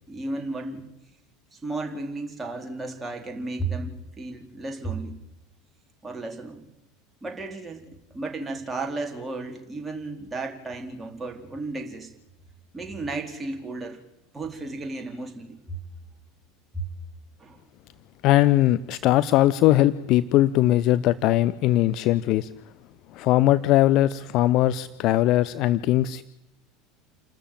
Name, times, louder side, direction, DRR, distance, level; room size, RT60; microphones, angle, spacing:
voice 1, 0.1-0.9 1.5-5.2 6.0-6.7 7.2-12.1 12.7-14.0 14.3-15.8 16.7-16.9 17.4-17.6, right 3 dB, 15° right, 3 dB, 4.1 m, -34 dB
voice 2, 18.2-22.5 23.1-26.2, left 14 dB, 45° left, 15 dB, 0.8 m, -20 dB
29.0 x 13.5 x 9.0 m, 0.87 s
figure-of-eight pair, 75°, 0 cm